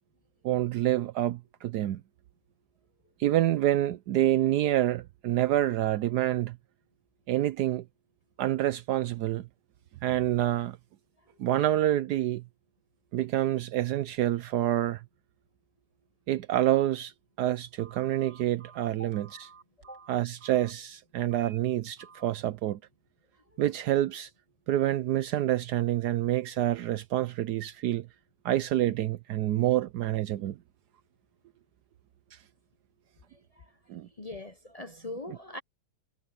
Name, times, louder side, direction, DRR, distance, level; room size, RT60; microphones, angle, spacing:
voice 1, 0.4-2.0 3.2-6.6 7.3-7.8 8.4-9.5 10.0-10.8 11.4-12.4 13.1-15.0 16.3-17.1 17.4-19.5 20.1-22.8 23.6-24.3 24.7-28.1 28.4-30.6 32.3-32.4 33.9-34.1 35.3-35.4, right 13 dB, 75° right, 1.1 m, -27 dB
Telephone, 17.8-20.7 21.3-21.6 22.0-22.3, right 5 dB, 90° right, 4.6 m, -53 dB
voice 2, 34.2-35.6, left 2 dB, 40° left, 0.5 m, -41 dB
omnidirectional pair, 1.9 m